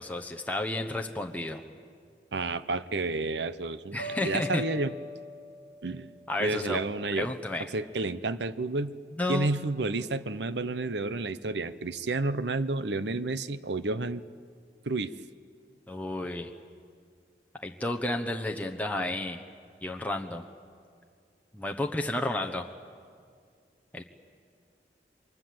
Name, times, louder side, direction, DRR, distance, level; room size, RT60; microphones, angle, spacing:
voice 1, 0.0-1.6 3.9-4.6 6.3-6.8 7.2-7.6 9.2-9.5 15.9-16.5 17.6-19.4 19.8-20.4 21.5-22.6 23.9-24.0, left 1 dB, 10° left, 3 dB, 1.0 m, -31 dB
voice 2, 2.3-4.9 5.8-6.1 6.4-7.3 7.7-8.9 9.3-14.2 14.8-15.1, right 3 dB, 85° right, 14 dB, 0.9 m, -30 dB
sound 1, 4.0-7.1, left 3 dB, 70° right, 3.7 m, -42 dB
28.5 x 23.5 x 7.8 m, 2.2 s
head